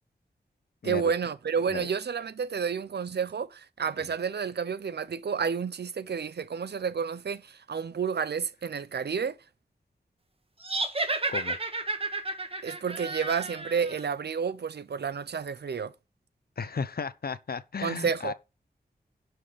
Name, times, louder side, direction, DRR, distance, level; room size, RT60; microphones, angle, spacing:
voice 1, 0.8-9.4 12.6-15.9 17.8-18.3, right 6 dB, 80° right, 0.8 m, -30 dB
sound 1, 10.6-14.0, right 2 dB, 35° right, 1.7 m, -32 dB
voice 2, 16.6-18.3, left 5 dB, 65° left, 0.9 m, -34 dB
11.5 x 6.0 x 5.2 m
wide cardioid pair, 85°, 17 cm